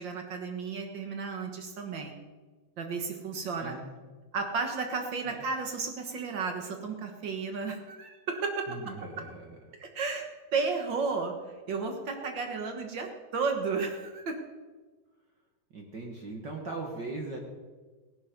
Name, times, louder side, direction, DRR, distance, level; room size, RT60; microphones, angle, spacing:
voice 1, 0.0-2.1 2.8-3.7 4.3-8.7 9.8-10.3 10.5-11.3 11.7-14.4, right 4 dB, 70° right, 4 dB, 1.0 m, -33 dB
voice 2, 3.6-4.0 5.2-5.4 8.7-9.6 15.7-17.4, right 2 dB, 50° right, 1 dB, 1.3 m, -39 dB
17.0 x 11.5 x 5.2 m, 1.3 s
omnidirectional pair, 4.1 m